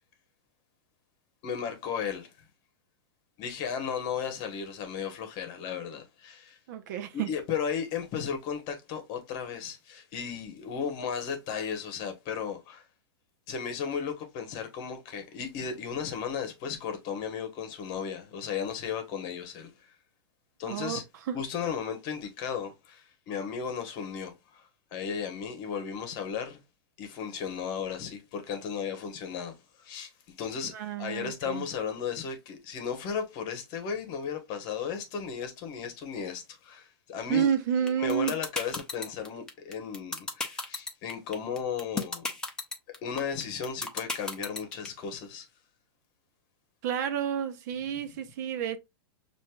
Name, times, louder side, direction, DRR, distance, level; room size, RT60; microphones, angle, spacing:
voice 1, 1.4-2.3 3.4-6.6 7.1-12.8 13.5-19.9 20.6-21.0 21.3-26.6 27.0-37.5 37.9-42.3 43.0-45.5, left 7 dB, 35° left, 1.1 m, -35 dB
voice 2, 6.7-7.3 20.7-21.0 21.3-21.4 30.7-31.7 37.3-38.4 46.8-48.8, right 8 dB, 45° right, 0.6 m, -30 dB
sound 1, 37.9-44.9, left 3 dB, 5° left, 0.6 m, -33 dB
6.2 x 2.6 x 2.3 m
supercardioid pair, 155°, 13 cm